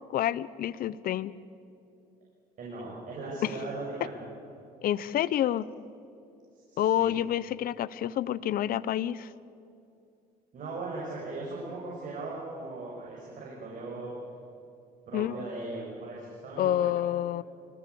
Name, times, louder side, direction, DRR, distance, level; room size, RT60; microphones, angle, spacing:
voice 1, 0.1-1.3 3.4-3.5 4.8-5.7 6.8-9.3 15.1-15.3 16.6-17.4, left 12 dB, 60° left, 18 dB, 0.8 m, -28 dB
voice 2, 2.6-4.2 6.7-7.1 10.5-14.1 15.1-16.9, right 2 dB, 50° right, -5 dB, 6.8 m, -38 dB
25.5 x 19.5 x 8.5 m, 2.7 s
cardioid pair, 110°, 17 cm